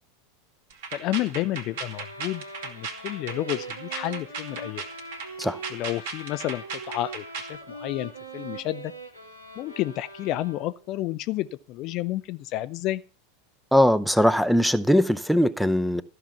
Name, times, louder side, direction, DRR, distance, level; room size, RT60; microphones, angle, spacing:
sound 1, 0.7-7.6, right 5 dB, 55° right, 2.2 m, -36 dB
voice 1, 0.9-4.8 5.7-8.9 9.6-13.0, left 15 dB, 40° left, 0.5 m, -31 dB
sound 2, 1.7-10.9, right 2 dB, 90° right, 2.3 m, -42 dB
voice 2, 13.7-16.0, equal, ahead, 0.7 m, -20 dB
14.0 x 5.8 x 7.1 m
figure-of-eight pair, 85°, 0 cm